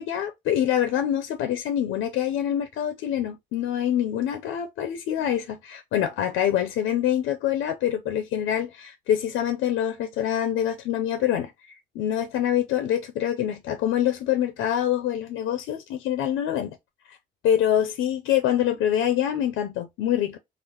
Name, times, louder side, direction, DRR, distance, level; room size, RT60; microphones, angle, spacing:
voice 1, 0.0-11.5 12.0-16.8 17.1-17.2 17.4-20.4, left 10 dB, 85° left, 0.5 m, -25 dB
3.6 x 2.0 x 2.9 m
cardioid pair, 90°, 20 cm